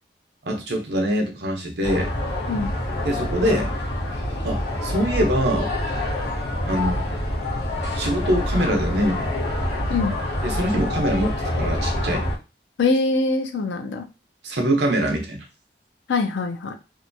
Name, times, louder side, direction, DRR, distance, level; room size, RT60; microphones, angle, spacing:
voice 1, 0.4-2.1 3.0-3.7 4.4-5.7 6.7-7.0 8.0-9.3 10.4-12.3 14.4-15.4, equal, 75° right, 2 dB, 0.7 m, -23 dB
sound 1, 1.8-12.4, left 1 dB, 70° left, 0.9 m, -26 dB
voice 2, 12.8-14.0 16.1-16.7, left 3 dB, 90° left, 6 dB, 0.5 m, -23 dB
2.7 x 2.2 x 2.6 m, 0.30 s
head